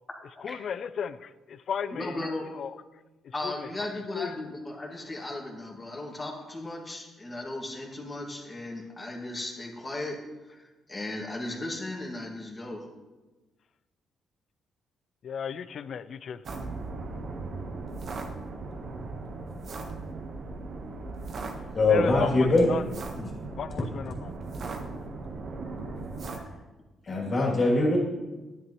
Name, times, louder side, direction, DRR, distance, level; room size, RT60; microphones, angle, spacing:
voice 1, 0.4-2.1 2.5-2.7 3.4-3.7 4.1-4.3 15.2-16.4 21.9-22.8 23.6-24.3, left 7 dB, 60° left, 14 dB, 0.4 m, -35 dB
voice 2, 1.9-2.4 3.3-10.2 10.5-12.8, left 2 dB, 25° left, -1 dB, 2.0 m, -36 dB
sound 1, 16.4-26.4, right 3 dB, 55° right, 1.2 m, -38 dB
voice 3, 21.7-22.8 23.1-23.3 27.0-28.0, left 2 dB, 40° left, -2 dB, 2.7 m, -22 dB
10.5 x 8.3 x 3.1 m, 1.2 s
cardioid pair, 90°, 0 cm